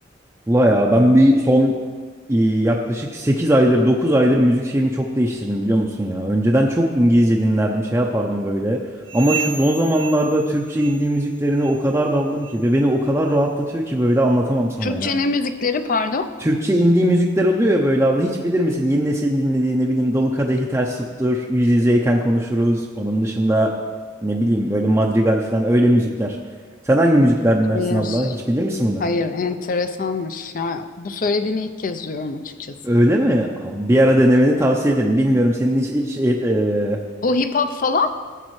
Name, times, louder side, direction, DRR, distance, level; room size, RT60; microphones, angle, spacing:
voice 1, 0.5-1.7 2.3-8.8 9.1-15.1 16.4-23.8 24.2-26.4 26.8-29.0 32.8-37.0, equal, 15° right, -1 dB, 0.5 m, -18 dB
sound 1, 9.0-11.3 11.5-11.9 12.4-12.6 13.2-13.4 14.1-14.2 14.9-15.0, right 7 dB, 75° right, 0.5 m, -33 dB
voice 2, 14.8-16.3 27.7-28.4 29.0-32.8 37.2-38.1, left 3 dB, 45° left, 9 dB, 0.5 m, -23 dB
14.5 x 7.5 x 3.1 m, 1.5 s
head